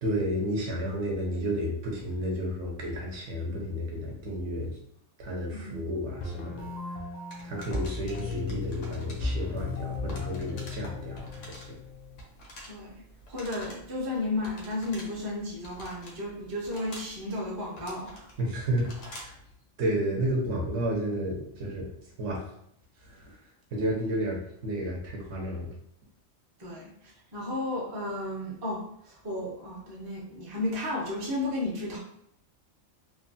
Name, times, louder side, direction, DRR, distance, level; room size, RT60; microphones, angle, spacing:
voice 1, 0.0-4.8 5.2-6.7 7.4-11.8 18.4-19.3 19.8-21.9 22.2-22.5 23.0-23.4 23.7-25.7, equal, 65° right, -1 dB, 0.9 m, -31 dB
sound 1, 6.2-12.2, left 4 dB, 55° left, 0.5 m, -36 dB
sound 2, 7.3-19.4, equal, 75° left, 1.1 m, -48 dB
voice 2, 13.3-18.2 26.6-32.0, left 2 dB, 25° right, -4 dB, 0.5 m, -33 dB
3.0 x 2.2 x 2.5 m, 0.71 s
omnidirectional pair, 1.3 m